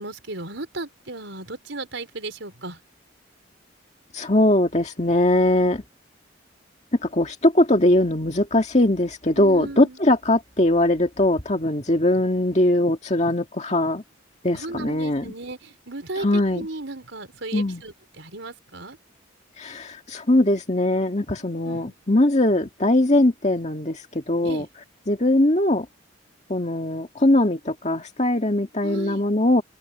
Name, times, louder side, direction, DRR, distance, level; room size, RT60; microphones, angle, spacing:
voice 1, 0.0-2.8 9.4-10.0 14.5-19.0 21.6-22.0 24.4-24.7 28.8-29.2, right 2 dB, 70° right, 4.8 m, -35 dB
voice 2, 4.1-5.8 7.0-14.0 14.4-15.3 16.2-16.7 17.5-17.8 19.6-24.7 25.1-25.9 26.5-29.6, left 1 dB, 35° left, 2.0 m, -21 dB
open air
head